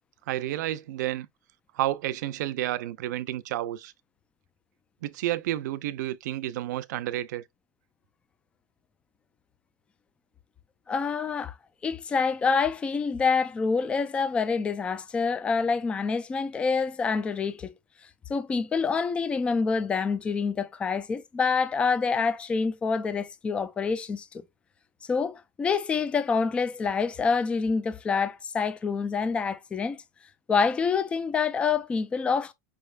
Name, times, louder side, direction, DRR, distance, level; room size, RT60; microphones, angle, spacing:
voice 1, 0.3-1.3 1.7-3.9 5.0-7.4, right 14 dB, 70° right, 0.5 m, -30 dB
voice 2, 10.9-11.5 11.8-17.7 18.3-24.3 25.0-30.0 30.5-32.5, left 5 dB, 10° left, 0.4 m, -27 dB
5.3 x 3.4 x 2.4 m
supercardioid pair, 165°, 10 cm